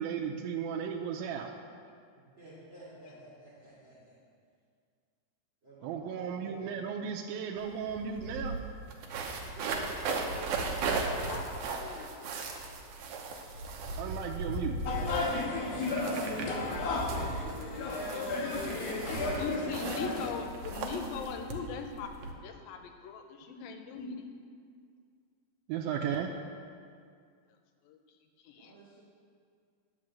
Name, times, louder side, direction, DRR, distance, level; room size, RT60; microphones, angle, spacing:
voice 1, 0.0-1.5 5.8-8.6 14.0-14.8 25.7-26.3, right 7 dB, 90° right, -1 dB, 2.4 m, -35 dB
voice 2, 2.1-4.2 5.6-7.0 9.3-10.6 20.0-20.3 28.5-29.0, right 2 dB, 35° right, -9 dB, 2.6 m, -52 dB
sound 1, 7.6-7.7 7.9-22.3, right 3 dB, 70° right, 2.1 m, -37 dB
voice 3, 11.1-12.1 18.2-18.3 19.2-22.1 22.4-24.2 27.9-28.0 28.4-28.7, left 5 dB, 80° left, 5 dB, 2.5 m, -39 dB
sound 2, 14.8-20.3, left 3 dB, 60° left, 1.9 m, -33 dB
10.5 x 5.7 x 7.4 m, 2.2 s
omnidirectional pair, 4.1 m